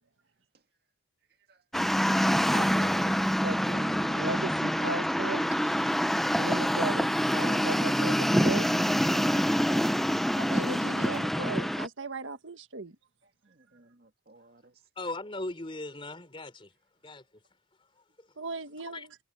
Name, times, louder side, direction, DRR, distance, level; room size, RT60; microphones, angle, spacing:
voice 1, 1.3-1.6 8.9-10.3 13.2-14.8, right 2 dB, 50° right, 2.2 m, -53 dB
sound 1, 1.7-11.9, equal, ahead, 0.5 m, -26 dB
voice 2, 2.5-5.7 6.3-8.9 10.4-12.9 18.4-19.1, right 3 dB, 75° right, 1.7 m, -37 dB
voice 3, 15.0-16.7 17.0-17.2 18.9-19.1, left 2 dB, 25° left, 3.5 m, -38 dB
head